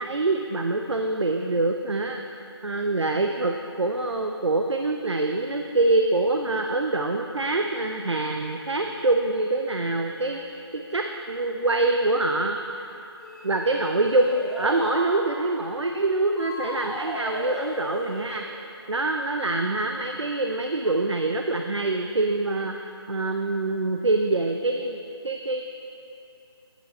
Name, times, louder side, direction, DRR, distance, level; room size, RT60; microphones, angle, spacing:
voice 1, 0.0-12.9 13.4-18.4 18.9-25.0 25.2-25.6, right 2 dB, 85° right, 4 dB, 0.9 m, -25 dB
sound 1, 13.2-15.0 16.4-18.4, equal, ahead, 1.6 m, -35 dB
18.0 x 9.3 x 4.2 m, 2.9 s
figure-of-eight pair, 160°, 14 cm